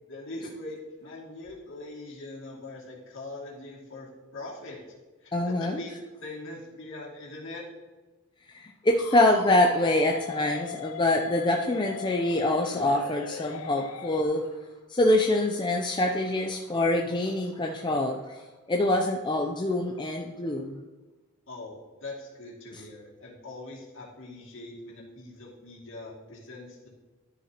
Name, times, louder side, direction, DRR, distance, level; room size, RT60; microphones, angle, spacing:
voice 1, 0.1-4.8 5.2-7.6 21.5-26.9, left 2 dB, 60° left, -3 dB, 2.5 m, -42 dB
voice 2, 5.3-5.8 8.5-14.4 14.9-20.8, left 1 dB, 20° left, 1 dB, 0.5 m, -25 dB
sound 1, 9.0-14.2, left 9 dB, 80° left, 0.4 m, -39 dB
12.0 x 7.0 x 2.9 m, 1.2 s
head